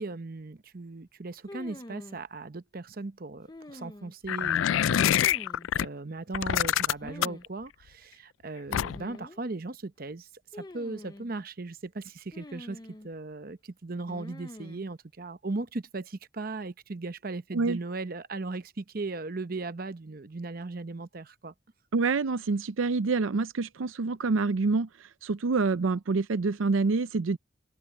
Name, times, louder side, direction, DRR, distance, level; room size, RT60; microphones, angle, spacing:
voice 1, 0.0-5.4 5.7-21.5, right 3 dB, 50° right, 0.8 m, -38 dB
sound 1, 1.5-2.2 3.5-4.3 5.0-5.7 7.0-7.4 7.7-7.8 8.7-9.4 10.5-11.3 12.3-13.1 14.1-14.8, left 1 dB, 20° left, 0.6 m, -45 dB
sound 2, 4.3-5.8 6.3-7.5 8.7-9.2, left 10 dB, 85° left, 0.3 m, -25 dB
voice 2, 21.9-24.9 25.2-27.4, right 4 dB, 85° right, 0.5 m, -26 dB
head